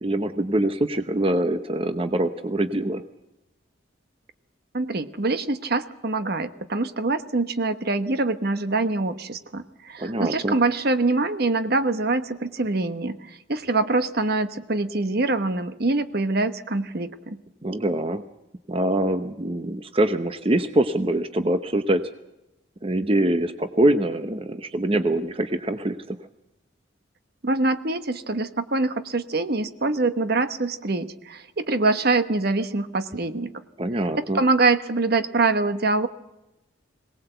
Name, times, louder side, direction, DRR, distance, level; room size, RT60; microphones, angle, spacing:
voice 1, 0.0-3.0 10.0-10.6 17.6-18.2 18.7-22.0 22.8-26.2 33.8-34.4, right 1 dB, 30° right, 9 dB, 0.9 m, -24 dB
voice 2, 4.7-17.4 27.4-33.5 34.2-36.1, right 3 dB, 55° right, 10 dB, 1.2 m, -24 dB
22.5 x 18.5 x 8.0 m, 0.94 s
head